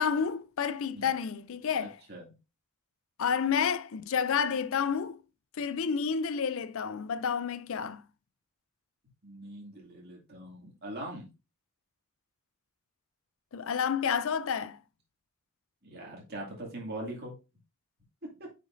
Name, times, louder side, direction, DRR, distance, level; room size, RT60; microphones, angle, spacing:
voice 1, 0.0-2.0 3.2-5.2 5.6-8.0 13.5-14.8, left 6 dB, 65° left, 0.5 m, -30 dB
voice 2, 1.8-2.2 9.2-11.3 15.8-17.4 18.4-18.5, right 1 dB, 45° right, 2.4 m, -42 dB
9.4 x 5.1 x 2.6 m
head